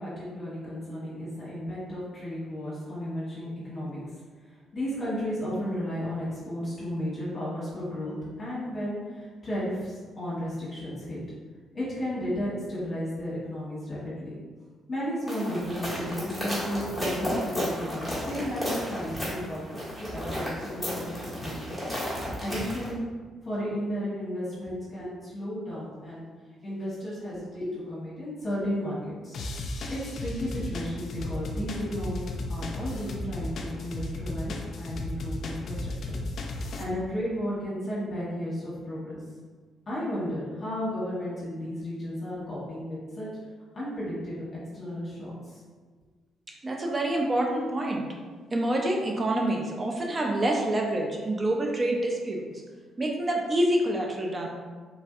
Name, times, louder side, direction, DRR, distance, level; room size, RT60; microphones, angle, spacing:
voice 1, 0.0-4.0 4.5-11.2 11.7-14.3 14.9-21.7 22.4-23.0 23.4-26.2 26.6-29.4 29.9-32.2 32.5-36.2 36.8-39.2 39.9-43.3 43.7-44.5 44.7-45.6, equal, 40° left, -9 dB, 1.1 m, -33 dB
sound 1, 15.3-22.9, equal, 5° right, 1.3 m, -33 dB
sound 2, 29.3-36.8, left 2 dB, 60° left, 0.3 m, -35 dB
voice 2, 46.5-48.0 48.5-52.5 53.0-54.5, right 1 dB, 30° right, 0 dB, 0.4 m, -27 dB
3.2 x 2.5 x 2.4 m, 1.5 s
cardioid pair, 90°, 0 cm